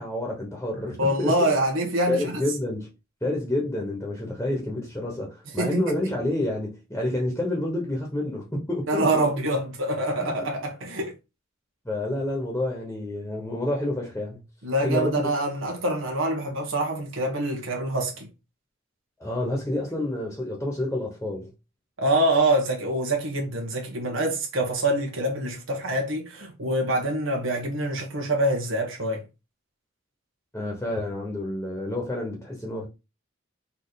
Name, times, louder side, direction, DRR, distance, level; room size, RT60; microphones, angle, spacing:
voice 1, 0.0-1.5 2.1-2.9 3.2-9.3 11.8-14.4 14.8-15.3 19.2-21.5 30.5-32.9, left 1 dB, 10° left, 1.1 m, -29 dB
voice 2, 1.0-2.3 5.6-6.0 8.9-11.1 14.6-18.3 22.0-29.2, right 1 dB, 80° right, 1.3 m, -25 dB
4.2 x 3.0 x 4.0 m
head